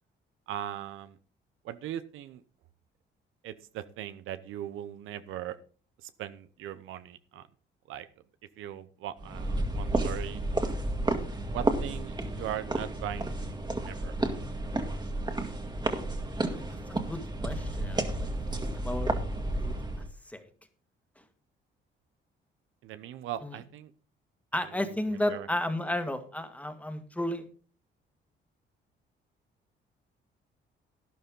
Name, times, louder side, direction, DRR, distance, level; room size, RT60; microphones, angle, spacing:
voice 1, 0.5-1.2 1.6-2.4 3.4-5.6 6.0-7.5 7.9-8.1 8.6-10.4 11.5-13.4 13.8-14.2 22.8-23.9 24.5-25.5, right 11 dB, 85° right, 12 dB, 0.8 m, -39 dB
sound 1, 9.2-20.1, right 2 dB, 20° right, 1.9 m, -31 dB
voice 2, 16.9-19.1 19.6-19.7 20.3-20.4 23.4-23.5 24.5-27.4, left 1 dB, 5° left, 8 dB, 1.8 m, -33 dB
12.0 x 11.0 x 3.8 m, 0.39 s
cardioid pair, 90°, 20 cm